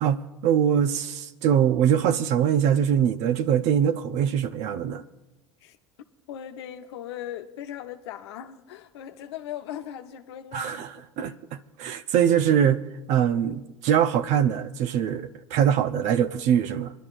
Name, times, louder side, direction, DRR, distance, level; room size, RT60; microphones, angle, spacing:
voice 1, 0.0-5.0 10.5-10.9 11.2-12.8 13.1-16.9, right 9 dB, 55° right, 0.7 m, -23 dB
voice 2, 6.3-10.8, left 10 dB, 70° left, 0.9 m, -38 dB
25.0 x 11.0 x 2.5 m
hypercardioid pair, 75°, 14 cm